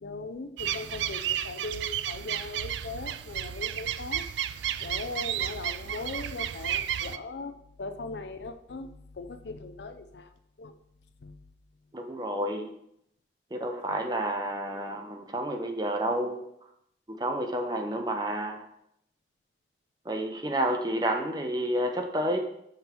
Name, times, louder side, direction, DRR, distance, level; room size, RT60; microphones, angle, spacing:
voice 1, 0.0-4.2 4.8-8.9 9.1-10.3 10.6-10.7 11.2-11.4, left 3 dB, 80° left, 8 dB, 0.6 m, -39 dB
sound 1, 0.6-7.2, right 10 dB, 85° right, 0.3 m, -32 dB
voice 2, 11.9-12.7 13.5-16.4 17.1-18.7 20.1-22.4, right 1 dB, 25° right, 4 dB, 0.7 m, -30 dB
5.8 x 5.3 x 4.5 m, 0.75 s
head